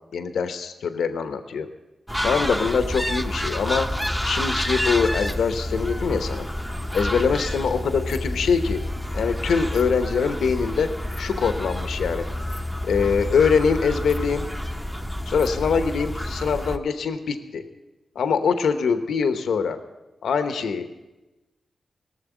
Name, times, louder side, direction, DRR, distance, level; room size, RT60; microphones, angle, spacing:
voice 1, 0.1-1.7 2.2-3.9 4.2-6.5 6.9-8.8 9.1-10.9 11.2-12.3 12.8-14.5 15.3-17.6 18.1-19.8 20.2-20.9, left 5 dB, 85° left, 9 dB, 0.9 m, -23 dB
sound 1, 2.1-16.8, left 1 dB, 5° right, 0.9 m, -29 dB
18.5 x 6.8 x 8.0 m, 1.1 s
cardioid pair, 60°, 0 cm